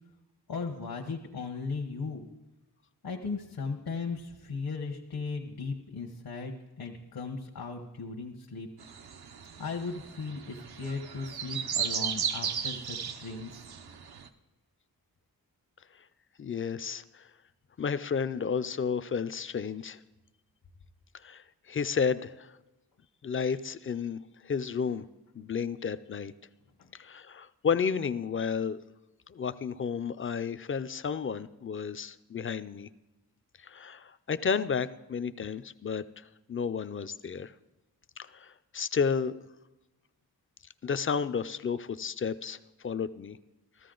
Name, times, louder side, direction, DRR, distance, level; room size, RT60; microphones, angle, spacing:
voice 1, 0.5-2.2 3.0-8.7 9.6-13.7 26.8-26.9, left 4 dB, 70° left, 2 dB, 1.1 m, -37 dB
sound 1, 8.8-14.3, right 7 dB, 80° right, 0.8 m, -35 dB
voice 2, 16.4-17.2 17.8-20.0 21.2-22.5 23.2-24.2 24.4-25.0 25.4-26.3 26.9-28.8 29.3-32.9 33.6-36.2 36.5-37.5 38.2-39.3 40.8-42.6 42.8-43.4, left 6 dB, 35° left, 14 dB, 0.4 m, -32 dB
15.0 x 13.5 x 3.8 m, 1.0 s
wide cardioid pair, 115°, 37 cm